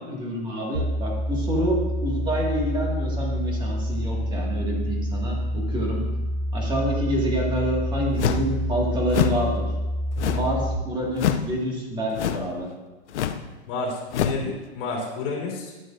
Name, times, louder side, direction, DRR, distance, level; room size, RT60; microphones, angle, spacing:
voice 1, 0.0-6.1 6.5-9.7 10.3-12.7, equal, 15° right, -2 dB, 1.7 m, -27 dB
sound 1, 0.7-10.8, equal, 80° right, 1.9 m, -27 dB
sound 2, 8.2-8.5 9.1-9.4 10.2-10.6 11.1-11.5 12.1-12.5 13.1-13.4 14.1-14.4, left 9 dB, 85° left, 0.7 m, -25 dB
voice 2, 13.7-15.7, left 3 dB, 50° left, -1 dB, 3.1 m, -30 dB
11.5 x 7.9 x 2.5 m, 1.2 s
hypercardioid pair, 150°, 34 cm